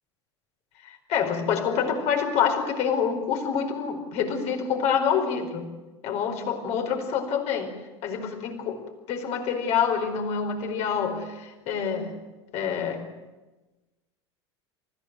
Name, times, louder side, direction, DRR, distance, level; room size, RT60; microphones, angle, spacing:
voice 1, 0.8-5.7 6.0-7.7 8.0-8.8 9.1-12.2 12.5-13.1, left 7 dB, 45° left, 4 dB, 4.7 m, -27 dB
28.5 x 15.5 x 9.2 m, 1.1 s
figure-of-eight pair, 80°, 15 cm